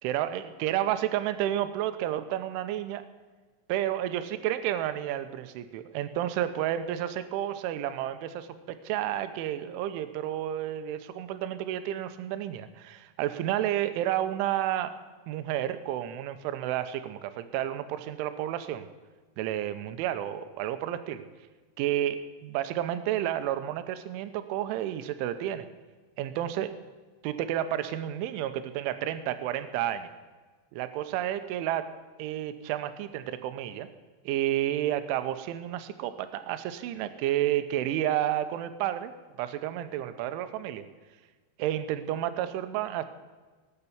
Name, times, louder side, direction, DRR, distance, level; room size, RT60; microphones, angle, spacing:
voice 1, 0.0-3.0 3.7-14.9 15.3-18.8 19.4-21.2 21.8-25.7 26.2-26.7 27.2-30.1 30.7-31.9 32.2-33.9 34.3-39.1 39.4-40.9 41.6-43.0, right 12 dB, 80° right, 11 dB, 3.1 m, -31 dB
19.0 x 6.9 x 8.6 m, 1.4 s
omnidirectional pair, 5.8 m